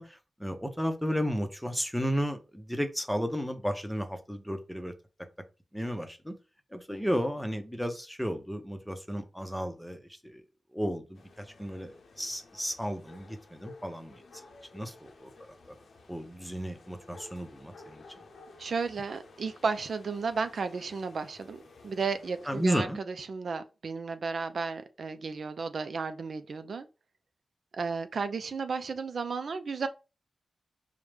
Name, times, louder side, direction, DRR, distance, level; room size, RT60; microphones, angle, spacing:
voice 1, 0.0-4.9 5.7-6.4 6.7-10.4 10.7-14.2 14.7-15.3 16.1-18.0 22.5-23.0, equal, 5° left, 0.7 m, -33 dB
sound 1, 11.1-22.9, left 3 dB, 80° left, 0.7 m, -54 dB
voice 2, 18.6-26.9 27.7-29.9, right 4 dB, 70° right, 0.4 m, -33 dB
4.7 x 2.1 x 3.3 m
cardioid pair, 65°, 0 cm